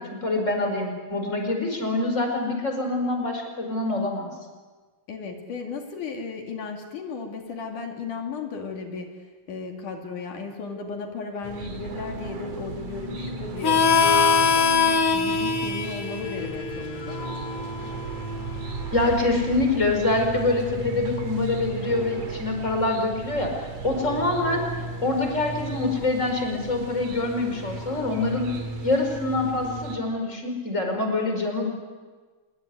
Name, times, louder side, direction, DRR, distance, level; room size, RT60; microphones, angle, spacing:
voice 1, 0.0-4.3 18.9-24.6 25.0-28.5 28.8-31.7, left 2 dB, 20° left, 3 dB, 5.3 m, -25 dB
voice 2, 5.1-9.1 9.5-14.7 15.1-17.2, left 4 dB, 80° left, 2 dB, 4.0 m, -35 dB
sound 1, 11.4-30.0, right 3 dB, 60° right, 3.8 m, -35 dB
Harmonica, 13.6-18.9, left 5 dB, 45° left, 1.1 m, -23 dB
26.0 x 23.0 x 9.7 m, 1.4 s
omnidirectional pair, 3.5 m